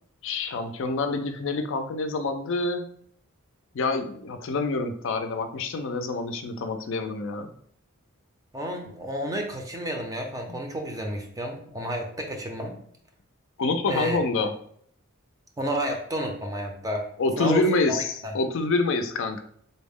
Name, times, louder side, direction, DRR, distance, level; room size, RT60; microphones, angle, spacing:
voice 1, 0.2-2.9 3.7-7.5 10.5-10.6 13.6-14.5 17.2-19.4, left 3 dB, 60° left, 7 dB, 0.4 m, -27 dB
voice 2, 8.5-12.7 13.9-14.2 15.6-17.1 17.4-18.3, equal, 15° right, 3 dB, 0.5 m, -31 dB
4.0 x 2.0 x 3.5 m, 0.62 s
head